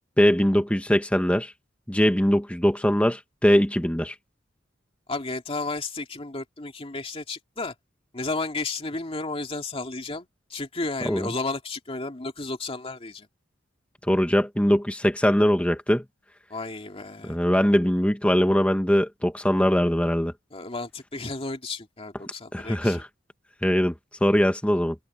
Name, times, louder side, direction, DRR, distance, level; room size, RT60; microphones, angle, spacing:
voice 1, 0.2-1.5 1.9-4.1 11.0-11.3 14.1-16.0 17.2-20.3 22.5-23.1 23.6-23.9 24.2-24.9, equal, 5° left, 1.2 m, -21 dB
voice 2, 5.1-7.7 8.1-13.3 16.5-17.4 20.5-23.0, left 3 dB, 30° left, 2.5 m, -33 dB
head